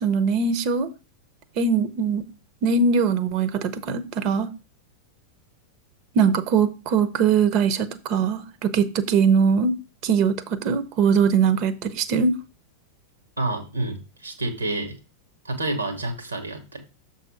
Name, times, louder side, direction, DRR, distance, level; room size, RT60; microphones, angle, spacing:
voice 1, 0.0-0.9 1.6-2.3 2.6-4.5 6.1-9.8 10.0-12.4, right 5 dB, 40° right, 0.8 m, -21 dB
voice 2, 13.4-15.0 15.4-16.8, right 2 dB, 80° right, 2.0 m, -29 dB
7.3 x 4.1 x 5.1 m
figure-of-eight pair, 90°, 0 cm